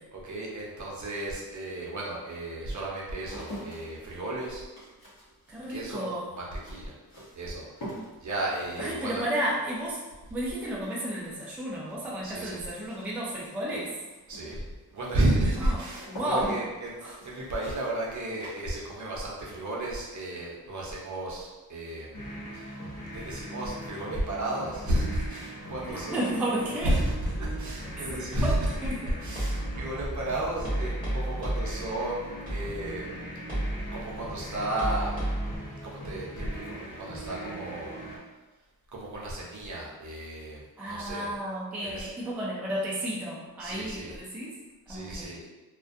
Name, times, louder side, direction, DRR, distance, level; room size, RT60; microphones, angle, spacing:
voice 1, 0.1-4.6 5.7-6.1 6.3-6.9 7.3-7.9 8.2-9.2 12.2-12.6 14.3-14.6 14.9-16.9 17.2-22.1 22.5-22.6 23.1-26.3 26.6-28.8 29.2-33.1 33.9-35.4 35.8-37.9 38.9-41.3 41.8-42.1 43.6-44.1 44.9-45.4, right 1 dB, 50° right, -4 dB, 0.6 m, -33 dB
sound 1, 2.6-19.3 19.6-20.2, equal, 75° left, 0.9 m, -45 dB
voice 2, 5.5-6.3 8.8-10.0 10.3-13.9 15.6-15.8 16.1-16.6 17.0-17.1 25.9-26.9 28.4-28.5 28.9-29.1 40.8-44.5 44.9-45.4, right 1 dB, 5° right, -5 dB, 0.3 m, -32 dB
sound 2, 22.1-38.2, equal, 55° left, 0.8 m, -41 dB
sound 3, 27.3-35.6, right 1 dB, 20° left, 1.1 m, -34 dB
2.4 x 2.2 x 2.5 m, 1.2 s
wide cardioid pair, 140°, 38 cm